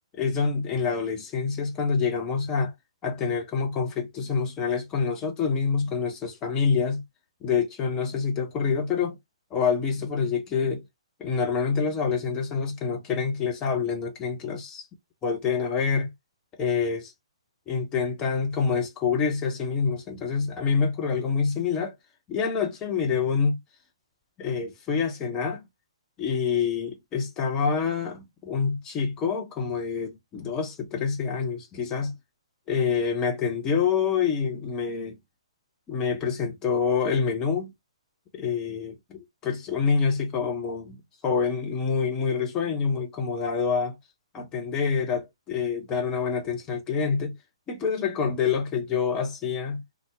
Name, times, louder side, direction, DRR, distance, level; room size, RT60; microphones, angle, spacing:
voice 1, 0.1-2.7 3.0-7.0 7.4-9.2 9.5-10.8 11.2-14.9 15.2-16.1 16.6-17.1 17.7-21.9 22.3-23.6 24.4-25.6 26.2-32.1 32.7-35.2 35.9-37.7 38.3-44.0 44.3-47.3 47.7-49.8, left 6 dB, 20° left, 0.8 m, -27 dB
2.8 x 2.0 x 3.4 m
figure-of-eight pair, 130°, 3 cm